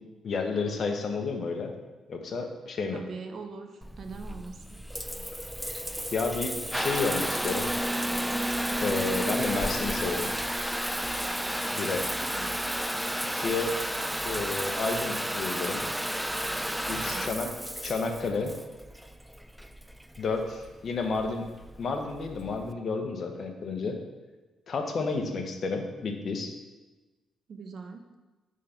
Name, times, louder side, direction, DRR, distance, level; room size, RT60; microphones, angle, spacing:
voice 1, 0.2-1.7 2.1-3.0 6.1-7.7 8.8-10.3 11.7-12.1 13.3-13.8 14.2-15.8 16.9-17.5 17.8-18.5 20.2-21.5 21.8-24.0 24.7-26.5, left 4 dB, 50° left, 4 dB, 0.9 m, -31 dB
voice 2, 2.9-4.8 12.2-12.5 17.0-17.6 25.0-25.1 27.5-28.0, right 4 dB, 55° right, 6 dB, 0.6 m, -42 dB
Water tap faucet / Bathtub (filling or washing) / Trickle dribble, 3.8-22.7, equal, 5° right, 0.3 m, -32 dB
5.2 x 3.7 x 5.7 m, 1.2 s
cardioid pair, 90°, 0 cm